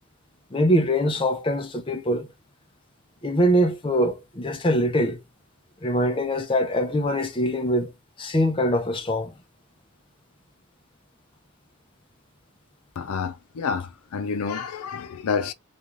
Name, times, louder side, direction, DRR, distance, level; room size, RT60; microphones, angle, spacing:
voice 1, 0.5-2.3 3.2-5.2 5.8-7.9 8.2-9.3, equal, 25° left, 0.5 m, -23 dB
voice 2, 13.0-15.5, left 5 dB, 85° left, 0.4 m, -29 dB
2.7 x 2.3 x 3.0 m
head